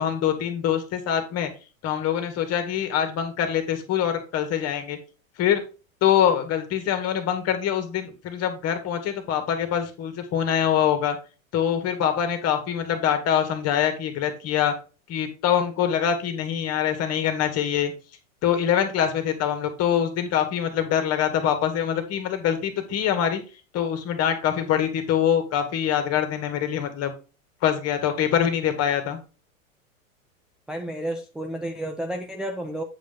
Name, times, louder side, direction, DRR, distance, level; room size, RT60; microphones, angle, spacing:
voice 1, 0.0-1.5 1.8-5.0 5.4-5.6 6.0-11.2 11.5-14.7 15.1-17.9 18.4-23.4 23.7-27.1 27.6-29.2, left 9 dB, 35° left, 7 dB, 2.0 m, -24 dB
voice 2, 30.7-32.8, right 1 dB, ahead, 2 dB, 0.5 m, -31 dB
8.7 x 5.2 x 3.8 m, 0.32 s
hypercardioid pair, 100°, 42 cm